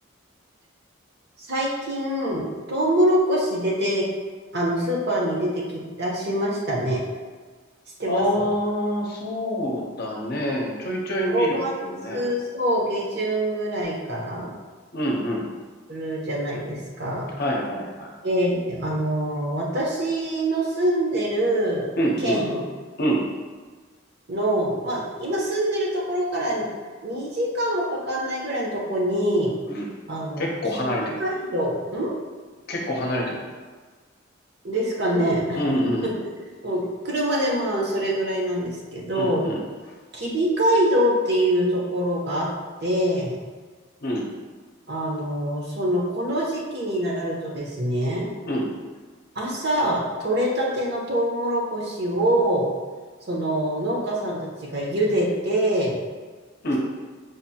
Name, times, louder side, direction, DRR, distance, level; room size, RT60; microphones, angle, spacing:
voice 1, 1.5-4.0 4.5-7.0 8.0-8.2 11.3-11.7 12.1-14.5 15.9-17.3 18.2-21.8 22.2-22.6 24.3-26.7 27.0-29.5 30.1-30.4 30.8-30.9 31.2-32.1 34.6-35.6 36.6-39.5 40.1-42.5 42.8-43.3 44.9-48.3 49.4-52.7 53.3-56.0, right 1 dB, 55° right, -3 dB, 0.8 m, -24 dB
voice 2, 8.1-12.2 14.9-15.4 17.4-18.1 22.0-22.4 23.0-23.2 29.6-29.9 30.4-31.3 32.7-33.5 35.5-36.2 39.1-39.6 44.0-44.3 48.5-48.7 56.6-56.8, equal, 50° left, -1 dB, 0.7 m, -26 dB
5.0 x 2.6 x 2.8 m, 1.4 s
head